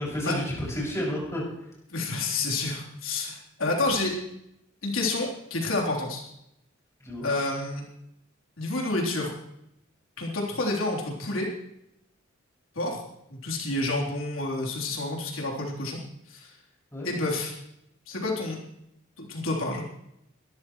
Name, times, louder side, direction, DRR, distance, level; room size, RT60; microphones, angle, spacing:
voice 1, 0.0-1.7 7.0-7.3 16.9-17.1, equal, 15° left, -5 dB, 6.5 m, -31 dB
voice 2, 1.9-4.2 4.8-6.2 7.2-7.8 8.6-9.3 10.2-11.5 12.8-13.0 13.3-16.0 16.3-16.5 17.0-17.5 18.1-18.6 19.2-19.8, left 2 dB, 85° left, -2 dB, 3.6 m, -29 dB
23.0 x 13.5 x 3.2 m, 0.79 s
head